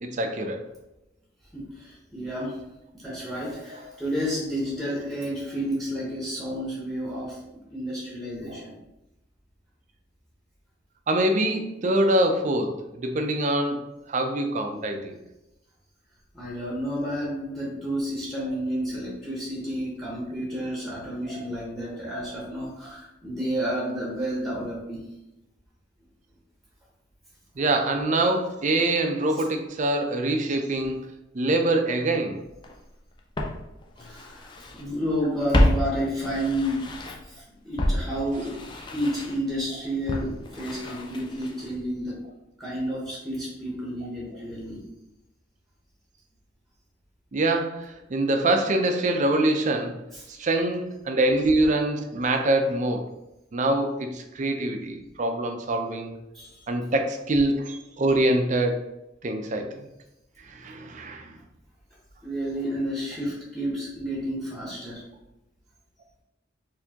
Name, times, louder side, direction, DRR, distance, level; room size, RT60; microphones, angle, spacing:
voice 1, 0.0-0.6 8.5-8.6 11.1-15.2 21.3-21.4 27.6-31.1 31.3-32.4 47.3-50.0 50.3-53.0 53.5-56.1 56.7-58.8 59.2-59.9 60.4-61.3, right 1 dB, 40° right, 5 dB, 0.4 m, -24 dB
voice 2, 1.5-2.6 2.9-7.4 7.7-8.7 16.3-25.0 34.0-36.8 37.2-38.6 38.9-42.2 42.6-44.8 50.1-50.3 56.3-56.6 62.2-65.0, equal, ahead, -5 dB, 0.9 m, -31 dB
Walk footsteps, 32.6-32.7 33.4-34.8 35.1-37.4 37.8-41.8 42.1-42.2, left 1 dB, 25° left, 0.4 m, -28 dB
4.3 x 2.7 x 2.8 m, 0.92 s
head